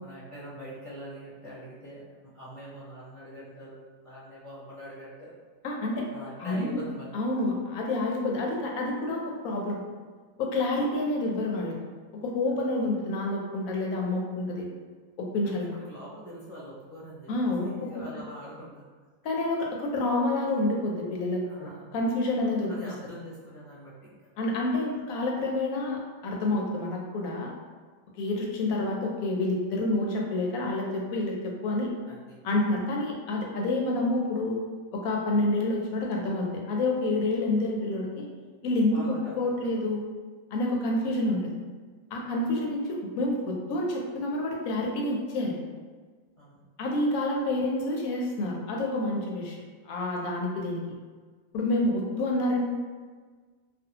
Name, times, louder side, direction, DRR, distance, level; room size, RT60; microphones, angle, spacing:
voice 1, 0.0-5.3 6.1-7.1 12.4-12.7 15.4-17.3 17.6-18.8 21.4-21.9 22.4-24.2 32.0-32.4 38.9-39.8 42.2-42.4 46.4-46.6, equal, 30° left, -9 dB, 0.8 m, -44 dB
voice 2, 5.6-6.1 6.4-6.8 7.1-9.8 10.4-11.8 12.2-14.7 15.2-15.7 17.3-18.0 19.2-22.7 24.4-27.5 28.2-31.9 32.4-34.6 34.9-38.3 38.6-40.0 40.5-41.4 42.1-45.6 46.8-49.6 49.8-50.8 51.5-52.7, left 2 dB, 80° left, -1 dB, 1.0 m, -28 dB
2.5 x 2.2 x 2.7 m, 1.5 s
omnidirectional pair, 1.5 m